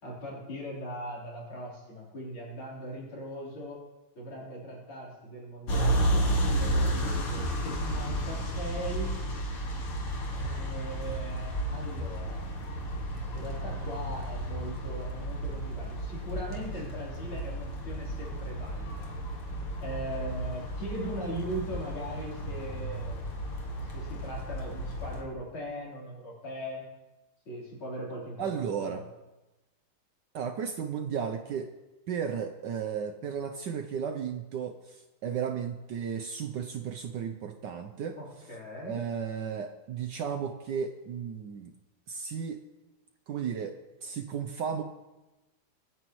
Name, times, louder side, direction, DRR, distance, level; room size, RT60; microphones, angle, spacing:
voice 1, 0.0-3.8 4.1-9.2 10.3-12.5 13.3-19.1 19.8-23.3 23.8-26.9 27.5-29.0 38.2-39.0, equal, 65° left, -5 dB, 4.7 m, -40 dB
sound 1, 5.7-25.2, right 1 dB, 85° left, 2.8 m, -32 dB
voice 2, 28.4-29.0 30.3-31.7 32.1-38.2 38.8-41.7 42.1-42.6 43.3-43.8 44.0-44.8, right 7 dB, 65° right, 7 dB, 1.2 m, -34 dB
24.5 x 9.4 x 3.1 m, 1.1 s
omnidirectional pair, 2.4 m